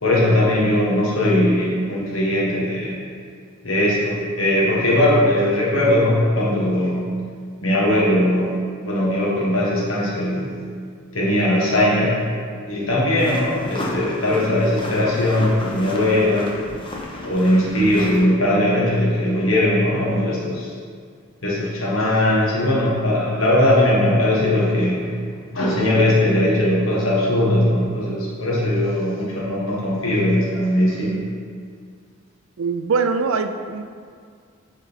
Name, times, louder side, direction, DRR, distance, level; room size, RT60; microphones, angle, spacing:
voice 1, 0.0-3.0 3.6-7.1 7.6-8.5 8.8-10.5 11.1-12.2 12.7-16.5 17.2-20.7 21.4-25.2 25.4-31.2, left 1 dB, 70° left, -6 dB, 1.5 m, -19 dB
sound 1, 13.2-18.3, left 1 dB, 25° left, 0.9 m, -33 dB
voice 2, 32.6-33.8, right 4 dB, 70° right, 8 dB, 0.5 m, -22 dB
10.0 x 4.0 x 4.1 m, 2.1 s
head